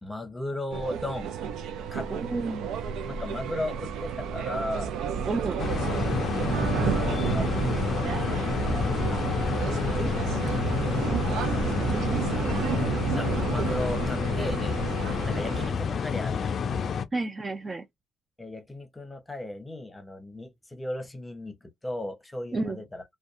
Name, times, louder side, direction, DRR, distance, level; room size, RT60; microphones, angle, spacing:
voice 1, 0.0-1.3 1.9-2.1 3.1-4.9 6.2-7.5 8.6-9.2 9.6-10.7 11.2-12.2 12.9-16.6 18.4-23.0, left 1 dB, 15° left, 0.8 m, -37 dB
sound 1, 0.7-15.7, right 7 dB, 90° right, 0.4 m, -31 dB
voice 2, 2.1-2.7 5.2-5.6 10.9-11.0 17.1-17.8 22.5-22.8, right 3 dB, 25° right, 0.4 m, -31 dB
sound 2, 5.6-17.1, left 6 dB, 55° left, 0.4 m, -29 dB
2.6 x 2.2 x 2.4 m
cardioid pair, 90°, 0 cm